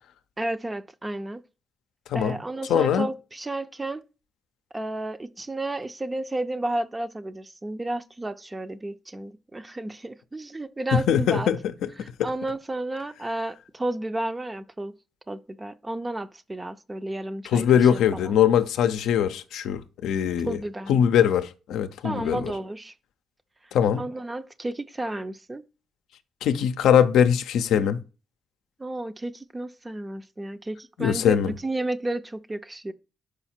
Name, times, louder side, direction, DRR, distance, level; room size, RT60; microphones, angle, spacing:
voice 1, 0.4-1.4 2.1-4.1 4.7-11.5 12.0-15.0 15.3-18.3 20.4-21.0 22.0-22.9 24.0-25.6 28.8-32.9, right 2 dB, 20° right, 0.5 m, -32 dB
voice 2, 2.7-3.1 10.9-11.9 17.5-20.6 20.9-22.4 23.7-24.0 26.4-28.0 31.0-31.5, left 9 dB, 90° left, 0.5 m, -21 dB
4.9 x 4.9 x 4.3 m
cardioid pair, 85°, 0 cm